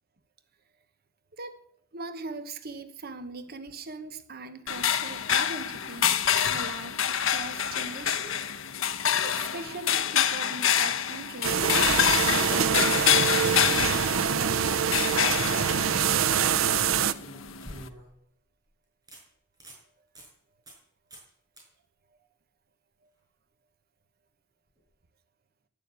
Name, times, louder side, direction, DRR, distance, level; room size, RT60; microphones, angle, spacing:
voice 1, 1.3-1.6 1.9-6.2 6.5-8.4 9.2-11.7 12.0-13.2 13.7-14.8, right 3 dB, 50° right, 1.1 m, -40 dB
sound 1, 4.7-17.9, left 9 dB, 75° left, 0.9 m, -27 dB
sound 2, 11.4-17.1, right 7 dB, 85° right, 0.7 m, -25 dB
sound 3, 16.9-18.2 18.7-18.8 19.1-19.2 19.5-19.8 20.2-20.3 20.7-20.8 21.1-21.3 21.6-21.7 24.8-24.9, right 1 dB, 20° right, 6.1 m, -47 dB
12.0 x 11.0 x 8.3 m
head